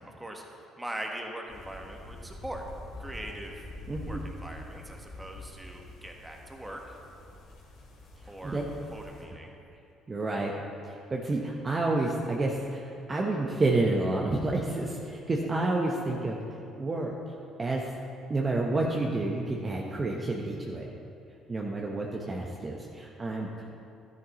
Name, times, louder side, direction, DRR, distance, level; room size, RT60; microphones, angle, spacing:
voice 1, 0.8-2.6 3.0-3.6 4.0-6.8 8.3-8.6 8.9-9.5, right 1 dB, 10° right, 1 dB, 1.5 m, -41 dB
sound 1, 1.5-9.2, left 1 dB, 70° left, 2.5 m, -45 dB
voice 2, 3.9-4.2 8.4-8.7 10.1-16.4 16.8-17.1 17.6-17.9 18.3-20.8 21.5-23.5, right 2 dB, 30° right, -1 dB, 1.0 m, -29 dB
12.5 x 9.6 x 3.1 m, 2.6 s
hypercardioid pair, 60°, 0 cm